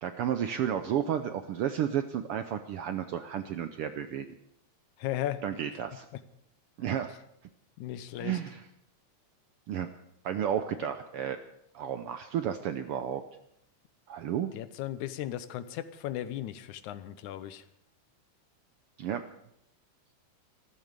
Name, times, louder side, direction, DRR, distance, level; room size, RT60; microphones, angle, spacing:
voice 1, 0.0-4.3 5.4-6.1 6.8-7.1 8.2-8.6 9.7-9.9 10.2-11.4 11.7-13.2 14.1-14.5 19.0-19.2, right 9 dB, 75° right, 9 dB, 1.3 m, -32 dB
voice 2, 5.0-5.4 6.1-6.2 7.8-8.4 14.5-17.7, left 12 dB, 85° left, 14 dB, 2.3 m, -36 dB
14.5 x 14.0 x 6.7 m, 0.77 s
omnidirectional pair, 3.4 m